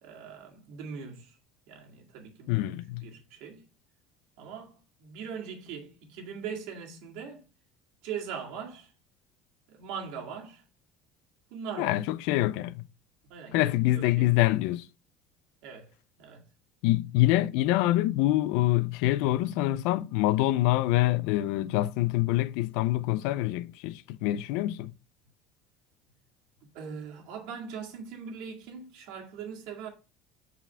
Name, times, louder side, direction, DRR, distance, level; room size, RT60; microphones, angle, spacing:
voice 1, 0.0-1.4 1.7-2.7 3.0-3.6 4.4-7.4 8.0-8.9 9.7-10.6 11.5-12.0 13.3-14.5 15.6-15.9 16.2-16.4 26.7-29.9, right 6 dB, 75° right, 1.9 m, -41 dB
voice 2, 2.5-3.0 11.8-12.8 13.5-14.9 16.8-24.9, left 16 dB, 75° left, 0.4 m, -25 dB
5.6 x 4.9 x 3.4 m
cardioid pair, 135°, 0 cm